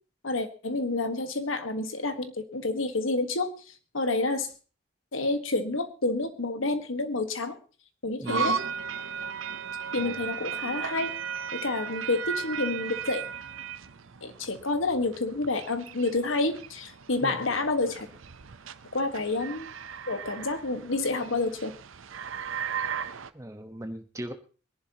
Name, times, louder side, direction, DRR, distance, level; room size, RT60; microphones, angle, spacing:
voice 1, 0.2-3.5 3.9-4.5 5.1-7.6 8.0-8.6 9.9-11.1 11.5-13.2 14.2-18.1 18.9-19.7 20.1-21.7, left 2 dB, 90° left, 8 dB, 1.5 m, -29 dB
voice 2, 8.2-8.5 10.0-10.2 17.2-17.4 23.3-24.3, right 1 dB, 15° right, 7 dB, 1.2 m, -39 dB
sound 1, 8.3-23.3, right 6 dB, 90° right, 0.7 m, -36 dB
23.5 x 11.0 x 2.9 m, 0.36 s
head